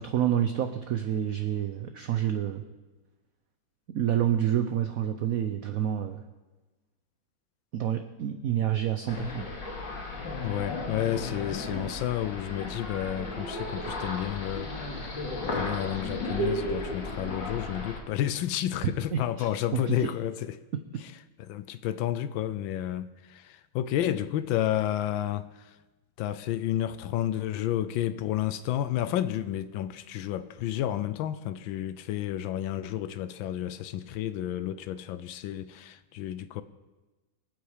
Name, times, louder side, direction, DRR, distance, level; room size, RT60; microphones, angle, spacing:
voice 1, 0.0-2.6 3.9-6.2 7.7-9.4 19.1-20.1 20.9-21.0, right 10 dB, 60° right, 1.0 m, -28 dB
sound 1, 9.1-18.0, left 2 dB, 70° left, 3.0 m, -34 dB
voice 2, 10.4-15.2 15.5-20.6 21.0-21.1 21.4-25.8 26.2-36.6, left 12 dB, 85° left, 1.4 m, -31 dB
24.0 x 8.2 x 5.0 m
omnidirectional pair, 2.1 m